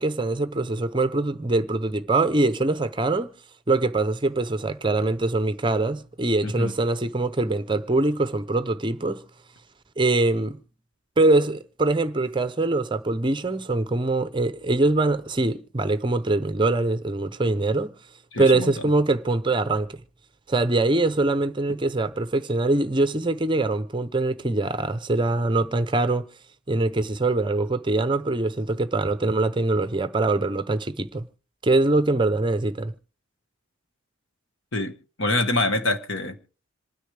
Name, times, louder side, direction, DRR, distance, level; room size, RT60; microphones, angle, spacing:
voice 1, 0.0-3.3 3.7-9.2 10.0-10.6 11.2-17.9 18.4-20.0 20.5-26.2 26.7-31.2 31.6-32.9, right 2 dB, 20° right, 0.6 m, -23 dB
voice 2, 6.4-6.7 18.3-18.7 34.7-34.9 35.2-36.4, left 2 dB, 65° left, 1.5 m, -25 dB
26.5 x 9.8 x 3.4 m
head